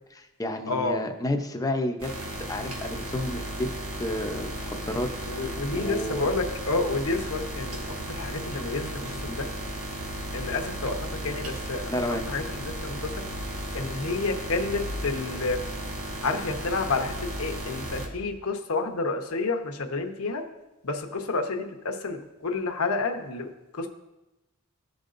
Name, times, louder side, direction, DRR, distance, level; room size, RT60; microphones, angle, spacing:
voice 1, 0.1-2.1 2.5-3.7 4.0-6.3 11.9-12.3, left 1 dB, 15° left, 4 dB, 0.6 m, -31 dB
voice 2, 0.7-1.0 5.3-7.8 8.1-9.5 10.3-11.0 11.2-11.8 12.3-13.0 13.7-15.6 16.2-20.4 20.8-23.5 23.8-23.9, left 3 dB, 70° left, 4 dB, 0.9 m, -29 dB
sound 1, 2.0-18.1, right 1 dB, 70° right, 1.5 m, -35 dB
15.0 x 5.3 x 2.6 m, 1.0 s
head